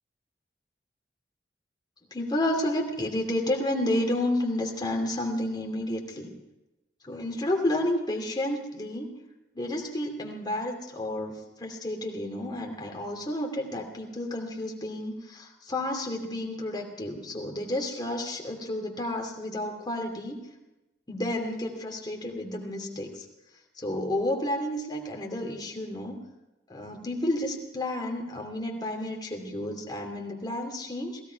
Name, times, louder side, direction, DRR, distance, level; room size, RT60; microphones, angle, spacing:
voice 1, 2.1-6.3 7.1-9.1 9.5-20.4 21.1-23.1 23.8-26.1 26.7-31.2, left 1 dB, 25° left, 0 dB, 2.7 m, -31 dB
17.0 x 16.5 x 4.6 m, 0.99 s
head